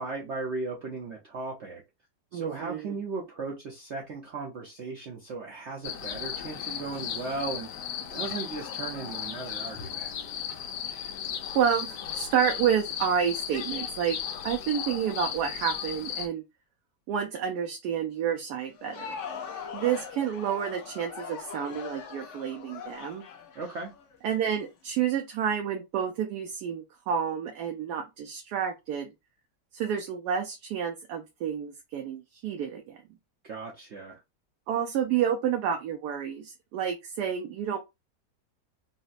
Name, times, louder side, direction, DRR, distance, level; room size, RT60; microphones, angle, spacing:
voice 1, 0.0-1.8 2.3-10.1 23.5-23.9 33.4-34.2, right 3 dB, 60° right, 0.7 m, -36 dB
voice 2, 2.3-2.8 11.5-14.2 14.4-16.4 17.1-19.2 19.7-23.2 24.2-29.1 29.7-33.0 34.7-37.8, right 8 dB, 75° right, 1.1 m, -29 dB
sound 1, 5.8-16.3, left 8 dB, 85° left, 1.2 m, -36 dB
Crowd, 18.7-24.6, left 6 dB, 65° left, 0.7 m, -41 dB
3.9 x 2.1 x 2.4 m
omnidirectional pair, 1.8 m